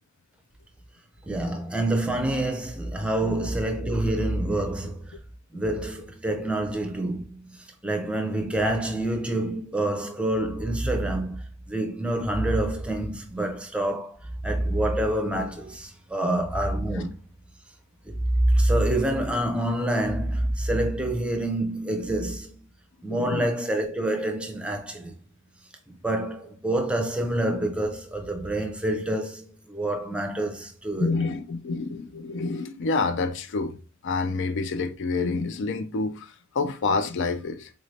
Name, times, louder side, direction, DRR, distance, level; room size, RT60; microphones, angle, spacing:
voice 1, 1.3-5.0 5.5-14.2 14.4-17.1 18.0-22.5 23.0-25.1 25.9-31.1, right 1 dB, 5° right, 0.6 m, -27 dB
voice 2, 23.1-23.5 31.0-33.8 34.0-37.7, left 3 dB, 60° left, 0.4 m, -28 dB
3.9 x 2.6 x 3.2 m
head